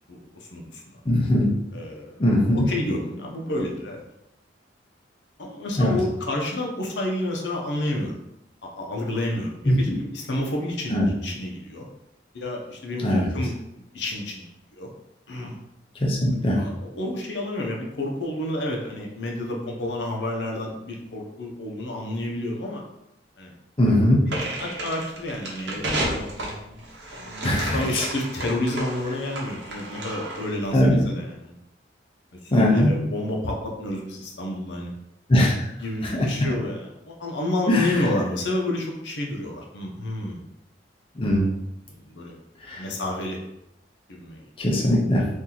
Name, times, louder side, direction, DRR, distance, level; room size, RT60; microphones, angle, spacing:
voice 1, 0.1-1.0 1.7-2.2 2.7-4.0 5.4-8.2 8.6-11.0 11.2-11.9 12.3-14.5 14.7-14.9 15.3-15.6 16.5-22.8 23.4-23.5 24.2-24.3 24.6-26.8 27.1-31.5 32.4-34.9 35.8-40.4 41.9-42.4 42.8-43.4 44.1-44.4, left 1 dB, 75° left, 0 dB, 0.7 m, -30 dB
voice 2, 1.1-1.5 2.2-2.7 5.8-6.0 9.7-10.0 10.9-11.1 13.0-13.3 16.0-16.6 23.8-24.3 27.4-28.1 30.7-31.0 32.5-32.9 35.3-35.7 36.0-36.5 37.7-38.0 41.2-41.5 42.7-42.9 44.6-45.3, left 1 dB, 30° left, -3 dB, 0.6 m, -20 dB
sound 1, 24.3-30.6, right 1 dB, 85° right, 0.9 m, -32 dB
2.9 x 2.6 x 3.8 m, 0.83 s
head